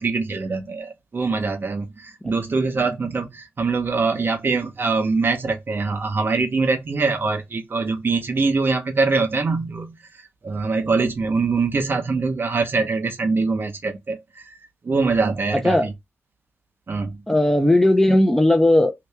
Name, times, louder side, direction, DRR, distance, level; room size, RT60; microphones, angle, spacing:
voice 1, 0.0-9.9 10.4-14.5 14.8-15.7 16.9-17.2, right 4 dB, 50° right, 0.9 m, -23 dB
voice 2, 17.3-18.9, left 1 dB, 5° left, 0.7 m, -17 dB
2.9 x 2.6 x 3.3 m
cardioid pair, 65°, 5 cm